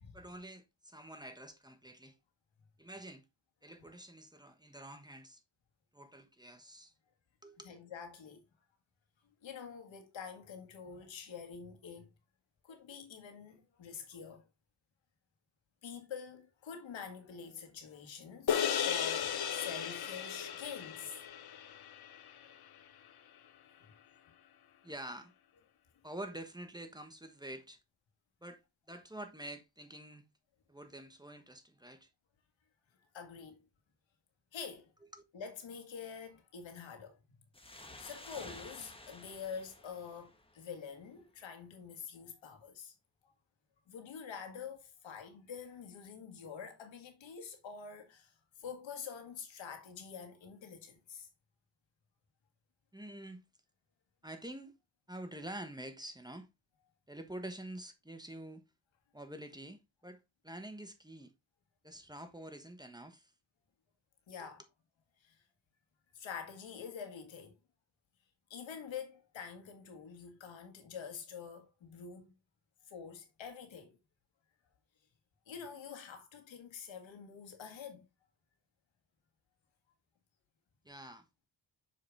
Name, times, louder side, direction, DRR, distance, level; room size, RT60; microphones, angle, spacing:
voice 1, 0.1-2.2 2.8-3.2 3.6-5.4 5.9-6.9 7.4-7.7 24.8-25.3 26.0-27.8 28.4-28.6 28.9-30.3 30.7-32.1 35.1-35.2 52.9-53.4 54.2-54.7 55.1-56.5 57.1-58.6 59.1-61.3 61.8-63.3 64.4-64.5 80.8-81.5, right 1 dB, 10° right, 1.3 m, -47 dB
voice 2, 7.6-8.4 9.4-12.1 12.6-14.5 15.8-21.2 22.3-22.6 33.1-33.6 34.5-34.9 35.3-37.2 38.0-42.9 43.9-48.3 48.6-51.3 64.3-64.6 65.2-65.4 66.1-67.6 68.5-72.3 72.9-74.0 75.5-78.0, left 6 dB, 85° left, 1.8 m, -46 dB
sound 1, 18.5-23.1, left 8 dB, 55° left, 0.9 m, -36 dB
sound 2, 37.5-40.9, left 2 dB, 10° left, 1.4 m, -52 dB
6.8 x 4.8 x 3.4 m
cardioid pair, 80°, 44 cm